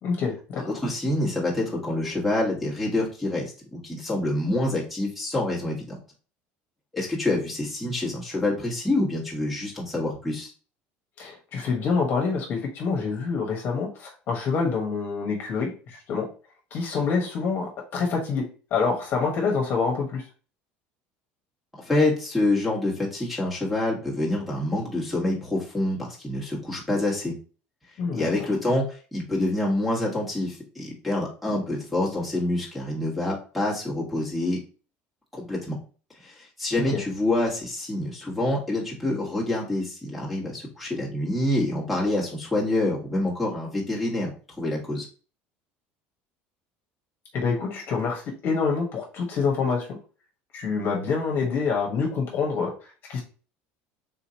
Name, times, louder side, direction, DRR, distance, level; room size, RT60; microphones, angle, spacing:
voice 1, 0.0-0.7 11.2-16.3 16.7-20.2 28.0-28.3 36.8-37.0 47.3-49.9 50.5-52.7 53.1-53.2, left 5 dB, 50° left, 0 dB, 1.1 m, -26 dB
voice 2, 0.6-5.9 6.9-10.5 21.7-27.3 28.1-34.6 35.3-35.8 36.2-44.3 44.6-45.1, left 2 dB, ahead, -6 dB, 1.5 m, -27 dB
3.8 x 2.8 x 2.8 m, 0.36 s
cardioid pair, 125°, 5 cm